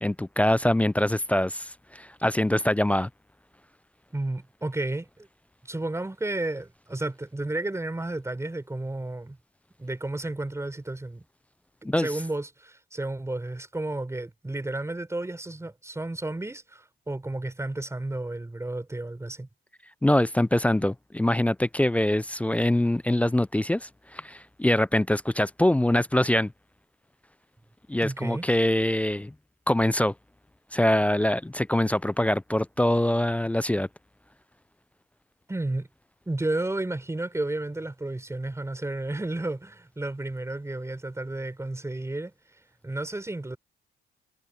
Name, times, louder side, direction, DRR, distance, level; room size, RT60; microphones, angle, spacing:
voice 1, 0.0-3.1 11.8-12.1 20.0-26.5 27.9-29.3 29.7-30.1 30.7-33.9, left 1 dB, 5° left, 0.3 m, -24 dB
voice 2, 4.1-5.3 5.7-9.4 9.8-11.2 12.0-19.5 28.0-28.4 35.5-35.9 36.3-42.3 42.8-43.6, right 2 dB, 15° right, 5.3 m, -32 dB
cardioid pair, 90°, 20 cm